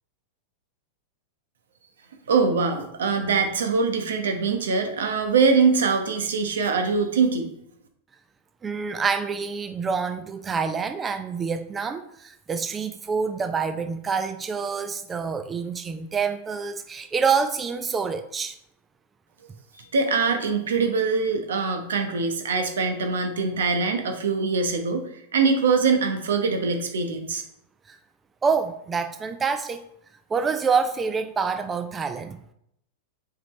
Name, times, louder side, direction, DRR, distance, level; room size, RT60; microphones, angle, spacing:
voice 1, 2.3-7.5 19.8-25.0 25.3-27.4, right 4 dB, 85° right, 5 dB, 1.0 m, -23 dB
voice 2, 8.6-18.5 27.9-28.0 28.4-29.8 30.3-32.4, right 5 dB, 20° right, 8 dB, 0.4 m, -27 dB
7.3 x 4.2 x 3.2 m, 0.75 s
hypercardioid pair, 120°, 0 cm